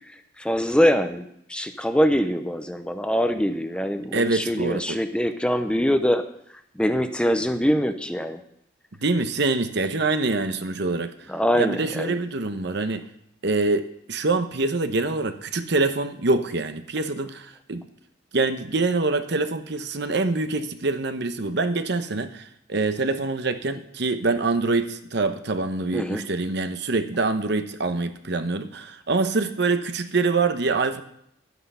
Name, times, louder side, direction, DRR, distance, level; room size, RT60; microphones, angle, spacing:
voice 1, 0.1-6.2 6.8-8.4 11.3-12.2 25.9-26.2, equal, 5° left, 0.7 m, -23 dB
voice 2, 4.1-5.0 9.0-11.1 11.6-13.1 13.4-17.8 18.3-31.0, right 3 dB, 60° right, 0.9 m, -25 dB
12.0 x 9.5 x 5.6 m
head